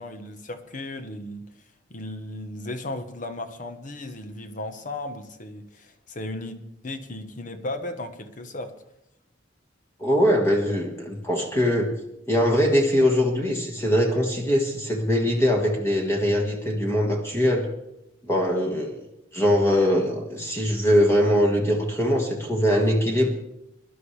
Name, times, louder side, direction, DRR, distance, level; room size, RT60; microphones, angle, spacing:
voice 1, 0.0-1.5 1.9-8.8, left 2 dB, 45° left, 1.1 m, -35 dB
voice 2, 10.0-11.9 12.3-17.6 18.2-19.0 19.3-23.3, equal, 15° left, 1.7 m, -22 dB
21.5 x 11.5 x 3.3 m
head